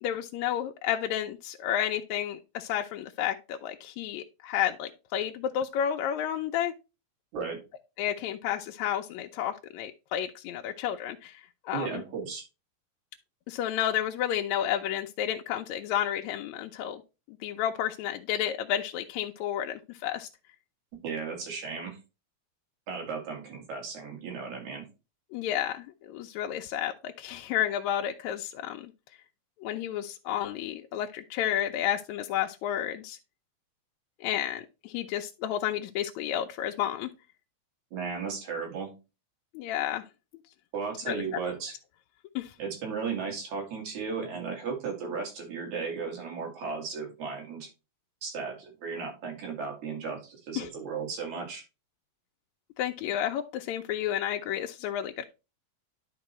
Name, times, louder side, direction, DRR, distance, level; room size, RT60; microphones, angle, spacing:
voice 1, 0.0-6.7 8.0-12.0 13.5-17.0 17.3-20.3 25.3-28.9 29.6-33.2 34.2-37.1 39.5-40.0 41.1-41.2 42.4-42.5 50.6-50.7 52.8-55.3, left 11 dB, 80° left, 3 dB, 1.9 m, -31 dB
voice 2, 11.7-12.4 21.0-22.0 22.9-24.9 37.9-38.9 40.7-41.8 42.6-47.7 48.2-51.6, right 5 dB, 80° right, 0 dB, 3.6 m, -35 dB
11.0 x 4.5 x 3.0 m, 0.28 s
omnidirectional pair, 3.3 m